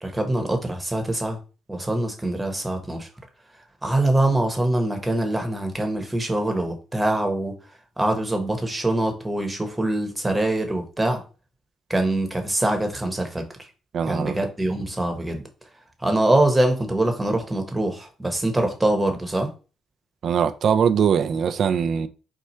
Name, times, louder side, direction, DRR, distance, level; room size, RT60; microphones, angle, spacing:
voice 1, 0.0-1.4 1.7-3.1 3.8-7.5 8.0-11.2 11.9-13.7 14.1-15.4 16.0-19.5, right 1 dB, 10° right, 1.1 m, -24 dB
voice 2, 13.9-14.4 20.2-22.1, right 7 dB, 60° right, 0.4 m, -21 dB
4.3 x 2.4 x 4.3 m
cardioid pair, 85°, 0 cm